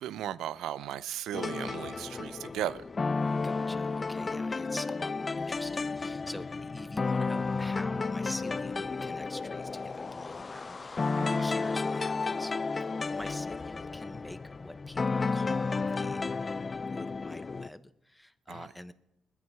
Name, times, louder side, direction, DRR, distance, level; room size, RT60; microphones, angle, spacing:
voice 1, 0.0-2.8 11.2-11.4 18.5-18.7, right 11 dB, 80° right, 0.5 m, -36 dB
sound 1, 1.3-17.7, left 4 dB, 30° left, 0.4 m, -32 dB
voice 2, 3.4-12.5 13.1-16.2 16.7-18.9, left 1 dB, 5° left, 0.9 m, -46 dB
20.5 x 9.6 x 4.8 m
cardioid pair, 90°, 0 cm